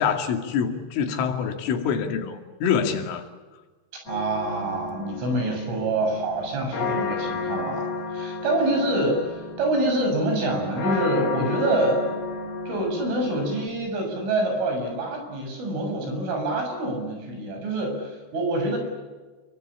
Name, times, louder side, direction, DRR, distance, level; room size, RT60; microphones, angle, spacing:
voice 1, 0.0-3.3, left 7 dB, 90° left, 4.9 m, -25 dB
sound 1, 4.1-13.7, left 4 dB, 50° left, 4.8 m, -32 dB
voice 2, 4.1-12.2 12.7-18.8, right 1 dB, 80° right, 9.7 m, -26 dB
29.5 x 23.0 x 8.6 m
omnidirectional pair, 5.6 m